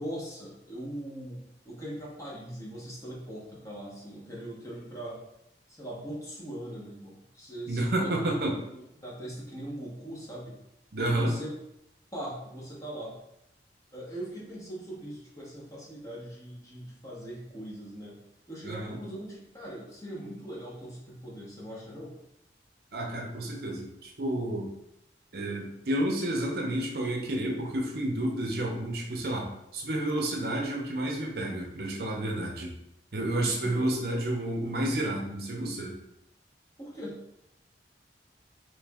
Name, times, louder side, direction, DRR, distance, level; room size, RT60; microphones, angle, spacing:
voice 1, 0.0-5.2 5.7-10.6 11.1-11.5 12.1-13.2 13.9-18.2 18.5-22.2 33.4-34.2 36.8-37.2, right 1 dB, 20° left, -5 dB, 0.9 m, -40 dB
voice 2, 7.7-8.6 10.9-11.3 18.6-19.0 22.9-24.7 25.3-29.5 29.7-32.7 33.1-36.0, right 1 dB, 55° right, 0 dB, 0.7 m, -30 dB
3.2 x 3.1 x 3.5 m, 0.83 s
head